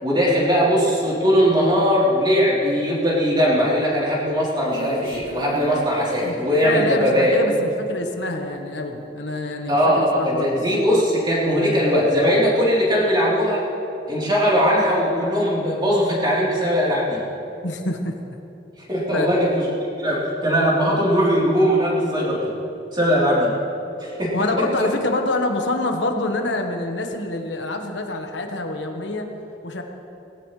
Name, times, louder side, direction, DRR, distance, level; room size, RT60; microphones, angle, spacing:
voice 1, 0.0-7.6 9.7-13.6 14.1-17.2 18.9-22.4 22.9-23.5 24.0-24.3 24.8-24.9, equal, 25° right, -6 dB, 3.5 m, -20 dB
Female singing, 4.7-8.2, left 1 dB, 50° left, 2.9 m, -37 dB
voice 2, 6.6-10.5 17.6-18.1 19.1-19.3 24.3-29.2 29.6-29.8, left 2 dB, 80° left, 3 dB, 1.3 m, -26 dB
19.0 x 16.5 x 3.3 m, 2.9 s
head